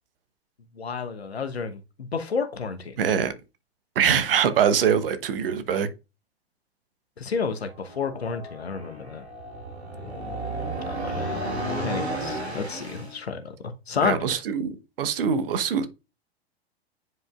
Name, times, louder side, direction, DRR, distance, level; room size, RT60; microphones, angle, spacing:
voice 1, 0.8-3.0 7.2-9.2 10.9-11.3 11.8-13.4 13.9-14.4, left 5 dB, 80° left, 1.1 m, -30 dB
voice 2, 3.0-3.3 4.0-5.9 14.0-15.9, right 7 dB, 60° right, 1.1 m, -23 dB
sound 1, 7.7-13.2, right 1 dB, 90° right, 1.7 m, -33 dB
9.5 x 5.2 x 2.4 m
figure-of-eight pair, 100°, 31 cm